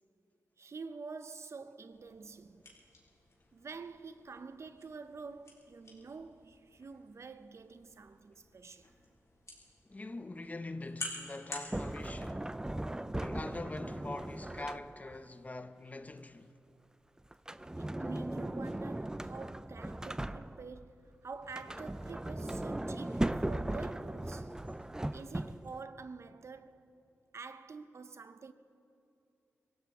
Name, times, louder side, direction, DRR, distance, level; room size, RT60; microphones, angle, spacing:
voice 1, 0.6-2.8 3.5-8.9 17.8-24.6 25.1-26.9 27.3-28.5, right 4 dB, 55° right, 0.7 m, -47 dB
sound 1, 1.9-11.7, left 2 dB, 65° left, 3.8 m, -50 dB
voice 2, 9.9-12.5 13.2-16.5, left 2 dB, 25° left, 0.7 m, -43 dB
Sliding door, 11.7-15.2 17.3-20.8 21.4-25.8, right 1 dB, 10° right, 0.4 m, -38 dB
24.5 x 16.0 x 3.6 m
cardioid pair, 65°, 6 cm